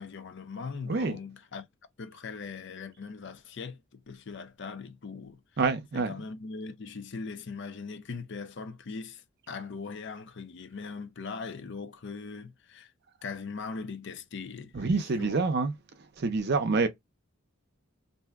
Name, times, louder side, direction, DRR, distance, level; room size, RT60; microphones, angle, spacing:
voice 1, 0.0-1.6 2.0-5.4 5.9-12.9 13.2-15.5, left 4 dB, 55° left, 0.5 m, -40 dB
voice 2, 0.9-1.2 5.6-6.1 14.7-15.7 16.2-16.9, right 4 dB, 50° right, 0.5 m, -27 dB
2.6 x 2.2 x 3.4 m
head